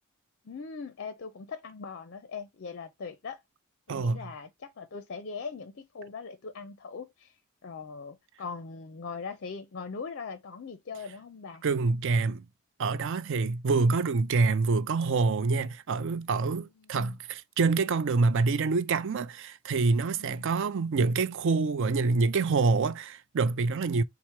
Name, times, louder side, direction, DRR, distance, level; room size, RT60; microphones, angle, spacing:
voice 1, 0.4-3.4 3.9-7.3 7.6-11.6 16.8-17.2 20.2-20.5, left 5 dB, 50° left, 0.5 m, -40 dB
voice 2, 3.9-4.3 11.6-12.5 12.8-24.0, right 4 dB, 55° right, 0.4 m, -26 dB
4.4 x 2.0 x 4.4 m
head